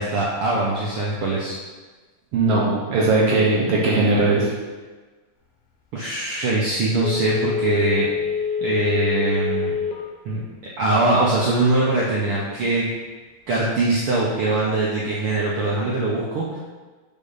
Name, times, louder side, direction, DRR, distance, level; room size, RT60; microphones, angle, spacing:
voice 1, 0.0-1.6 5.9-8.1 8.6-9.7 10.2-10.4 10.8-12.9 13.5-16.6, right 2 dB, 90° right, -5 dB, 1.2 m, -22 dB
voice 2, 2.3-4.5, right 3 dB, 65° right, -4 dB, 1.7 m, -19 dB
Telephone, 7.0-10.1 10.5-10.6, left 6 dB, 65° left, 1.6 m, -25 dB
5.4 x 4.8 x 5.6 m, 1.3 s
omnidirectional pair, 3.8 m